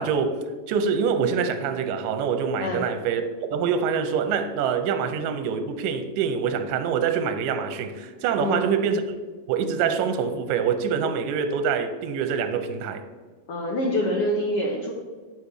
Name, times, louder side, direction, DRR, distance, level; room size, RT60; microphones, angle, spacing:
voice 1, 0.0-3.2 3.5-9.0 9.5-13.0, right 6 dB, 85° right, 2.3 m, -25 dB
voice 2, 13.5-14.9, left 1 dB, 85° left, 1.3 m, -25 dB
9.8 x 3.9 x 6.4 m
omnidirectional pair, 3.9 m